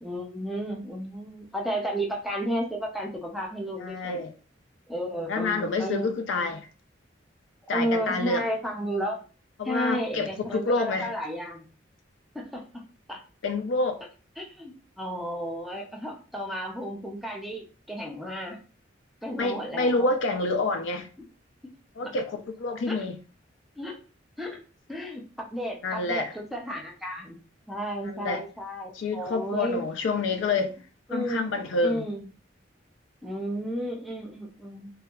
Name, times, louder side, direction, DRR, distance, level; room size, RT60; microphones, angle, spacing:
voice 1, 0.0-4.3 4.9-6.6 7.7-9.2 9.6-11.7 12.3-12.6 13.1-13.2 14.4-18.6 19.2-20.1 21.2-21.3 21.6-21.7 22.9-23.0 23.8-24.0 24.4-24.6 24.9-27.4 27.7-29.8 30.5-30.7 31.1-31.5 31.8-32.3 33.2-34.9, equal, ahead, 0.4 m, -33 dB
voice 2, 3.8-4.3 5.1-6.7 7.7-8.4 9.6-11.1 13.4-14.0 19.4-21.1 22.0-23.2 25.8-26.3 28.1-28.4 28.9-30.7 31.1-32.0, left 3 dB, 75° left, 0.4 m, -28 dB
2.7 x 2.2 x 2.3 m
head